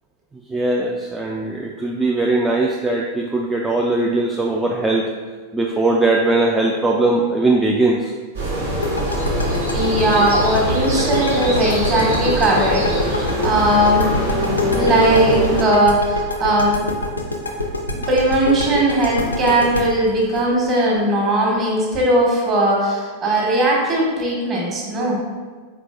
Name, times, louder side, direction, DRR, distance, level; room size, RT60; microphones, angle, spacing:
voice 1, 0.5-5.1 5.5-8.1, right 2 dB, 10° right, -1 dB, 0.3 m, -19 dB
sound 1, 8.3-15.6, equal, 75° right, 1.2 m, -22 dB
sound 2, 8.8-21.6, left 2 dB, 85° left, 0.5 m, -25 dB
voice 2, 9.7-14.1 14.8-16.8 18.1-25.2, right 1 dB, 30° right, -2 dB, 1.3 m, -18 dB
4.5 x 4.0 x 2.5 m, 1.5 s
figure-of-eight pair, 90°, 0 cm